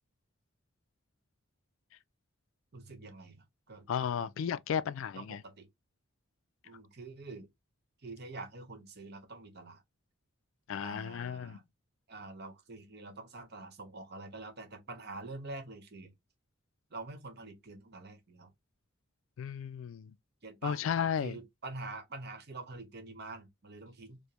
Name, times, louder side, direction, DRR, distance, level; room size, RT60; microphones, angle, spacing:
voice 1, 2.7-3.9 4.2-4.3 5.1-5.7 6.6-7.5 8.0-9.8 10.8-11.6 12.1-16.1 16.9-18.5 20.4-20.8 21.2-24.2, right 3 dB, 50° right, 1.0 m, -46 dB
voice 2, 3.9-5.4 10.7-11.6 19.4-20.1 20.6-21.4, left 8 dB, 65° left, 0.3 m, -34 dB
5.0 x 2.1 x 2.9 m
head